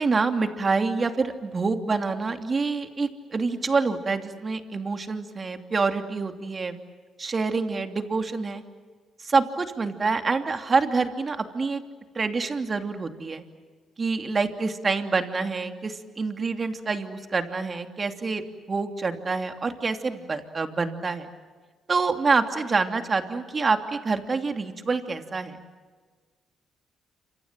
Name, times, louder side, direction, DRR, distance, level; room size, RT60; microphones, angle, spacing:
voice 1, 0.0-6.8 7.2-8.6 9.2-11.8 12.1-13.4 14.0-18.4 18.7-21.3 21.9-25.6, right 4 dB, 35° right, 6 dB, 2.9 m, -26 dB
28.5 x 26.5 x 7.6 m, 1.5 s
cardioid pair, 90°, 0 cm